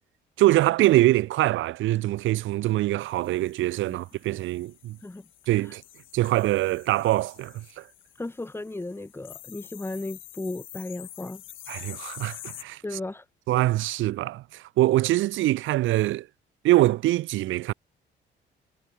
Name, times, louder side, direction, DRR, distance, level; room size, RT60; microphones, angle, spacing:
voice 1, 0.4-5.0 5.5-5.8 6.1-7.9 11.7-12.8 13.5-16.3 16.6-17.7, right 16 dB, 75° right, 0.5 m, -23 dB
sound 1, 3.1-12.6, left 13 dB, 80° left, 2.1 m, -47 dB
voice 2, 8.2-11.4 12.8-13.3, left 2 dB, 10° left, 1.8 m, -35 dB
cardioid pair, 90°, 20 cm